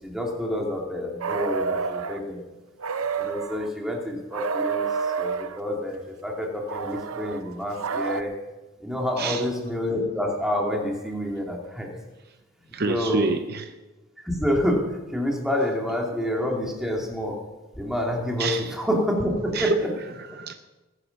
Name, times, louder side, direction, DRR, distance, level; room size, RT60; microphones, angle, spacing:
voice 1, 0.0-2.4 3.2-8.3 8.8-11.9 12.8-13.3 14.2-17.4 17.8-19.9, left 1 dB, ahead, 2.6 m, -28 dB
sound 1, 1.2-2.2 2.8-3.7 4.3-5.6 6.7-8.2, right 5 dB, 85° right, 0.7 m, -29 dB
voice 2, 9.2-9.5 12.7-13.7 18.4-18.8 19.5-20.5, right 3 dB, 50° right, 0.7 m, -28 dB
20.0 x 9.8 x 5.9 m
head